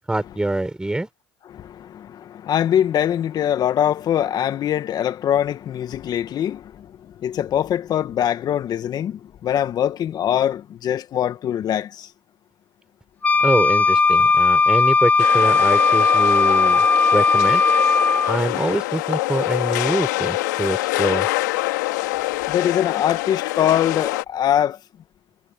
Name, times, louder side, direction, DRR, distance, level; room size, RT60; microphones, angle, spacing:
voice 1, 0.1-1.1 13.4-16.9 17.1-17.6 18.3-21.3, right 2 dB, 10° right, 6.5 m, -24 dB
voice 2, 1.5-12.1 22.5-24.8, left 10 dB, 45° left, 2.0 m, -23 dB
Wind instrument woodwind instrument, 13.2-18.4, left 4 dB, 15° left, 0.6 m, -17 dB
sound 1, 15.2-24.2, left 20 dB, 90° left, 2.4 m, -25 dB
supercardioid pair, 95°, 9 cm